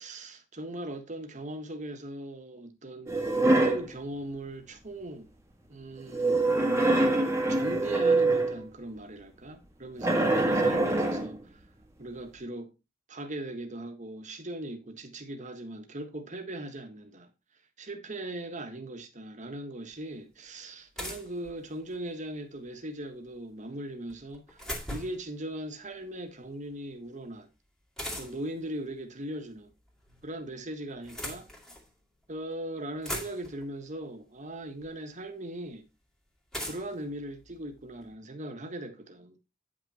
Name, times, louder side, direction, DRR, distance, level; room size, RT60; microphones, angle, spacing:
voice 1, 0.0-5.3 5.7-6.4 7.5-11.6 12.0-12.7 13.1-17.3 17.8-27.5 28.1-29.7 30.2-31.5 32.3-35.9 36.6-39.3, right 1 dB, 35° right, 1.5 m, -39 dB
sound 1, 3.1-3.9 6.1-8.6 10.0-11.4, right 2 dB, 15° right, 1.5 m, -24 dB
sound 2, 19.9-20.0 21.0-22.1 24.1-25.3 28.0-28.6 29.7-30.3 30.9-31.9 32.5-32.6 32.8-33.7 34.8-34.9 36.5-38.1, equal, 5° left, 2.2 m, -40 dB
9.4 x 6.1 x 4.2 m
head